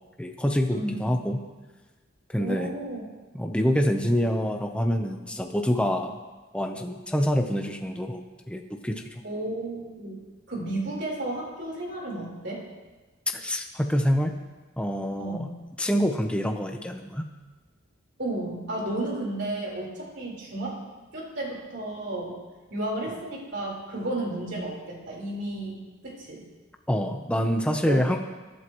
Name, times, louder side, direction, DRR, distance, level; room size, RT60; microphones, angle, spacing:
voice 1, 0.2-1.4 2.3-2.7 3.3-6.1 6.5-8.2 8.5-9.2 13.3-14.3 14.8-15.5 15.8-17.3 26.9-28.2, equal, 5° left, 3 dB, 0.7 m, -26 dB
voice 2, 0.7-1.0 2.4-3.0 9.2-10.2 10.5-12.7 15.2-15.5 18.2-20.8 21.1-22.4 22.7-26.4 27.9-28.1, right 1 dB, 55° right, -3 dB, 4.1 m, -33 dB
23.0 x 11.5 x 3.1 m, 1.2 s
head